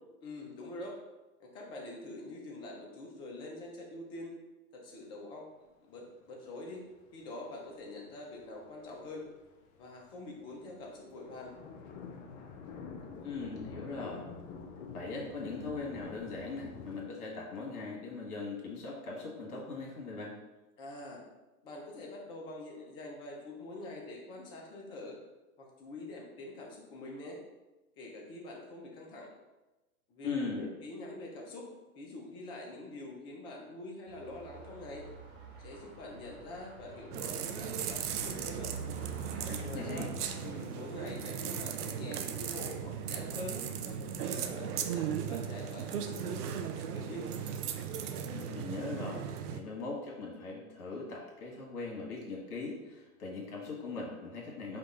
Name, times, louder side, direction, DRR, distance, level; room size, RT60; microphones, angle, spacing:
voice 1, 0.2-1.0 1.4-4.3 4.7-5.5 5.9-6.8 7.1-9.2 9.7-11.5 20.8-21.2 21.6-25.2 25.6-27.4 28.0-29.3 30.1-30.3 30.6-31.7 32.0-35.0 35.6-38.7 39.6-40.1 40.4-43.6 44.2-47.3, left 2 dB, 15° left, -1 dB, 0.3 m, -45 dB
sound 1, 6.7-6.8 7.1-17.0, left 5 dB, 50° left, 0.8 m, -48 dB
voice 2, 13.2-14.2 14.9-20.3 30.2-30.7 39.3-40.1 48.2-54.8, left 3 dB, 75° left, -3 dB, 1.5 m, -40 dB
sound 2, 34.1-48.2, right 3 dB, 25° right, 1.2 m, -49 dB
sound 3, 37.1-49.6, right 8 dB, 85° right, 0.6 m, -37 dB
5.1 x 2.3 x 4.1 m, 1.1 s
hypercardioid pair, 120°, 45 cm